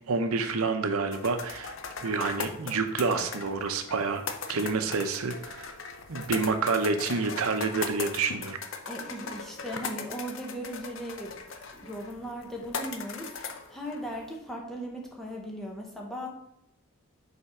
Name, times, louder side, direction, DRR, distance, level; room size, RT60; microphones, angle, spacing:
voice 1, 0.0-1.7 2.0-4.2 4.5-5.7 6.1-8.6, right 4 dB, 85° right, 7 dB, 0.7 m, -28 dB
sound 1, 1.1-14.4, left 5 dB, 60° left, 0.6 m, -39 dB
voice 2, 8.9-11.4 11.7-16.3, equal, ahead, -2 dB, 1.0 m, -38 dB
5.5 x 4.3 x 4.9 m, 0.78 s
head